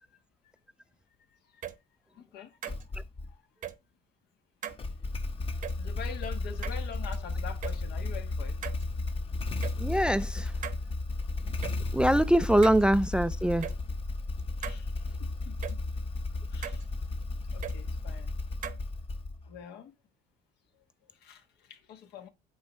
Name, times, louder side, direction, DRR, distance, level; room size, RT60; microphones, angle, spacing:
sound 1, 1.6-1.8 2.6-2.8 3.6-3.8 4.6-4.8 5.6-5.8 6.6-7.2 7.6-7.8 8.6-8.8 9.6-9.8 10.6-10.8 11.6-11.8 12.6-12.8 13.6-13.8 14.6-14.8 15.6-15.8 16.6-16.8 17.6-17.8 18.6-18.8, right 10 dB, 55° right, 0.9 m, -38 dB
voice 1, 2.1-2.6 3.3-3.4 5.7-9.1 11.4-11.8 14.6-14.9 15.2-15.8 16.5-16.9 17.5-18.3 19.4-19.9 20.7-20.8 21.1-22.3, left 8 dB, 75° left, 1.4 m, -45 dB
Motorcycle / Engine starting, 2.7-3.3 4.7-19.6, left 2 dB, 35° left, 0.9 m, -34 dB
voice 2, 9.8-10.5 11.9-13.7, right 1 dB, 5° right, 0.3 m, -23 dB
8.6 x 3.4 x 5.2 m
cardioid pair, 110°, 17 cm